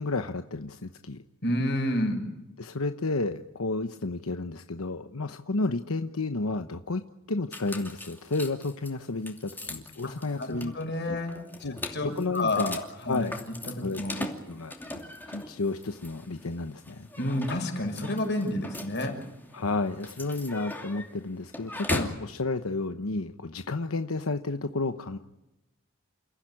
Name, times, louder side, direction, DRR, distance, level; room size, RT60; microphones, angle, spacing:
voice 1, 0.0-1.2 2.6-7.0 7.3-10.7 11.1-11.2 11.6-12.8 13.1-13.4 13.8-14.7 15.2-17.1 19.5-25.2, left 3 dB, 90° left, 8 dB, 1.0 m, -31 dB
voice 2, 1.4-2.3 10.0-10.1 10.4-11.4 11.9-12.7 13.0-13.2 13.7-14.2 17.2-19.2, left 1 dB, 55° left, 4 dB, 6.1 m, -29 dB
sound 1, 7.5-22.3, left 1 dB, 10° left, 2.7 m, -40 dB
29.0 x 15.0 x 9.9 m, 0.93 s
head